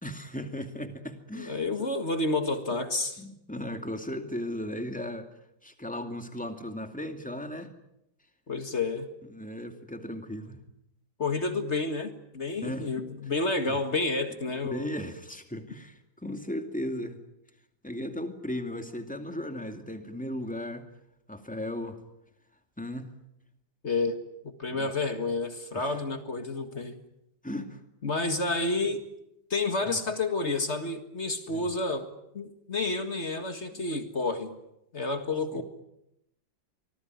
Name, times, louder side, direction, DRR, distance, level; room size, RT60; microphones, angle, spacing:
voice 1, 0.0-1.9 3.2-5.3 5.6-7.7 9.3-10.6 12.6-12.9 13.6-13.8 14.6-17.2 17.8-20.9 21.3-22.0 22.8-23.1 24.7-24.9 25.7-26.0 27.4-27.8 29.8-30.0 31.5-31.7 33.7-33.8 35.5-35.6, left 1 dB, 5° left, 6 dB, 2.3 m, -36 dB
voice 2, 1.3-3.2 8.5-9.1 11.2-14.9 23.8-24.2 24.4-27.0 28.0-29.0 29.5-32.1 32.3-34.5 34.9-35.6, left 3 dB, 40° left, 8 dB, 2.0 m, -30 dB
25.0 x 19.0 x 9.5 m, 0.84 s
omnidirectional pair, 2.0 m